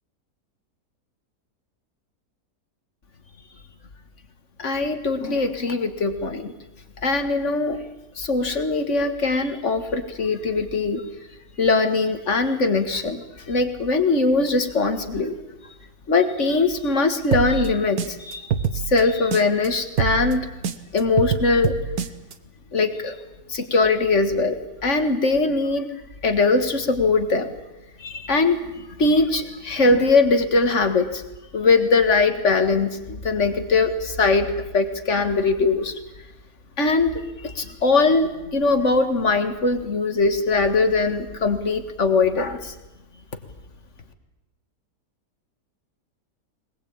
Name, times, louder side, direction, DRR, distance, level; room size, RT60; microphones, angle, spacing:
voice 1, 4.6-6.5 7.0-7.8 8.2-11.0 11.6-15.3 16.1-18.5 18.9-20.5 20.9-21.7 22.7-23.2 23.5-25.9 26.2-27.5 28.0-31.2 31.5-36.0 36.8-42.7, left 3 dB, 45° left, 7 dB, 2.0 m, -21 dB
sound 1, 17.3-19.7 20.0-22.3, right 7 dB, 65° right, 1.5 m, -25 dB
21.0 x 20.5 x 8.7 m, 0.99 s
omnidirectional pair, 1.8 m